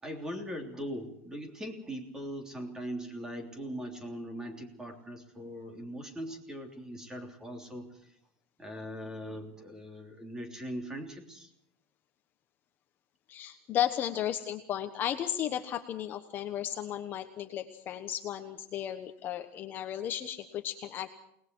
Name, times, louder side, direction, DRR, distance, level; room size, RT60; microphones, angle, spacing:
voice 1, 0.0-8.1 8.6-11.5, equal, 10° right, 4 dB, 3.3 m, -40 dB
voice 2, 13.3-21.1, left 10 dB, 30° left, 7 dB, 1.2 m, -34 dB
29.0 x 20.0 x 4.7 m, 0.77 s
supercardioid pair, 165°, 7 cm